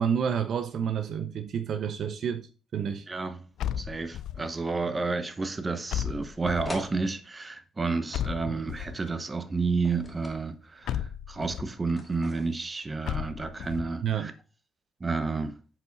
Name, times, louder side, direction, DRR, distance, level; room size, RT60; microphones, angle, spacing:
voice 1, 0.0-3.1 8.4-8.6 14.0-14.3, right 8 dB, 60° right, 0.6 m, -29 dB
voice 2, 3.1-3.5 3.8-14.3 15.0-15.5, right 4 dB, 25° right, 0.9 m, -31 dB
sound 1, 3.6-4.6 5.9-6.9 8.1-9.1 10.9-11.7 13.1-13.9, left 10 dB, 75° left, 0.4 m, -34 dB
sound 2, 6.6-6.9 9.8-10.4 12.0-12.7, left 2 dB, 15° left, 2.2 m, -42 dB
7.6 x 4.8 x 4.0 m
cardioid pair, 90°, 0 cm